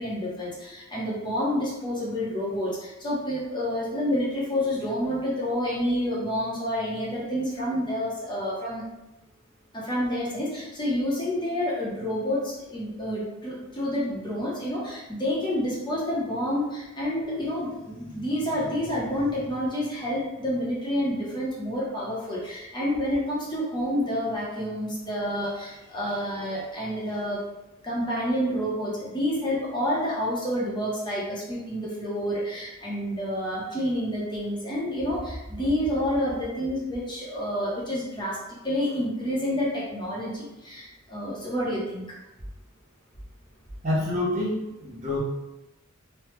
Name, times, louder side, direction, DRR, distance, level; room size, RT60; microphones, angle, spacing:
voice 1, 0.0-8.8 9.7-27.4 27.8-38.4 38.6-42.0, equal, 20° left, -6 dB, 0.9 m, -29 dB
voice 2, 43.8-45.2, left 1 dB, 35° right, -5 dB, 0.8 m, -27 dB
3.2 x 2.3 x 3.1 m, 0.95 s
head